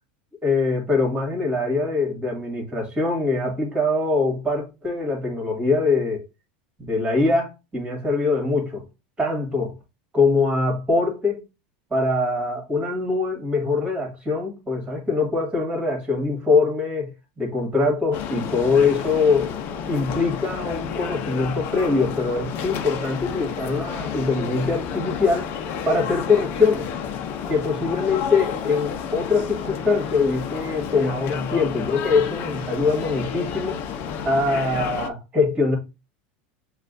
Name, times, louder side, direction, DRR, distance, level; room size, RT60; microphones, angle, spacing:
voice 1, 0.4-6.2 6.8-8.8 9.2-9.7 10.1-11.4 11.9-17.1 17.4-19.5 19.9-25.5 25.8-26.9 27.5-33.8 34.2-35.8, left 3 dB, 15° right, 2.0 m, -23 dB
sound 1, 18.1-35.1, left 7 dB, 45° left, 0.7 m, -31 dB
6.5 x 2.5 x 2.6 m
supercardioid pair, 130°, 5 cm